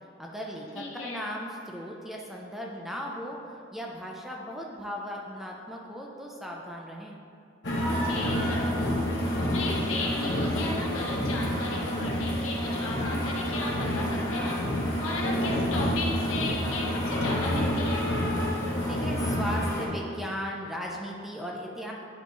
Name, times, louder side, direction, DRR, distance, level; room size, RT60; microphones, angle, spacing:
voice 1, 0.2-3.4 3.7-7.2 18.9-21.9, equal, ahead, -2 dB, 0.4 m, -37 dB
voice 2, 0.7-1.2 8.0-9.0 9.5-18.0, left 2 dB, 85° left, -3 dB, 1.2 m, -35 dB
sound 1, 7.6-19.9, equal, 60° left, 1.1 m, -28 dB
9.7 x 3.4 x 3.0 m, 2.7 s
head